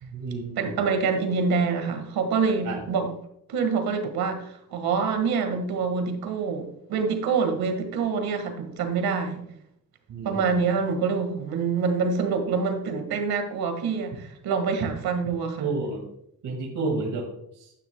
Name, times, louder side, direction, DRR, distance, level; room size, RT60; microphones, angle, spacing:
voice 1, 0.0-0.8 2.6-2.8 10.1-10.6 14.8-14.9 15.6-16.0 16.4-17.3 17.6-17.7, right 3 dB, 60° right, 0 dB, 2.0 m, -30 dB
voice 2, 0.5-3.1 3.5-9.4 10.2-15.7, right 5 dB, 85° right, 6 dB, 1.7 m, -26 dB
11.0 x 9.8 x 2.2 m, 0.73 s
cardioid pair, 135°, 35 cm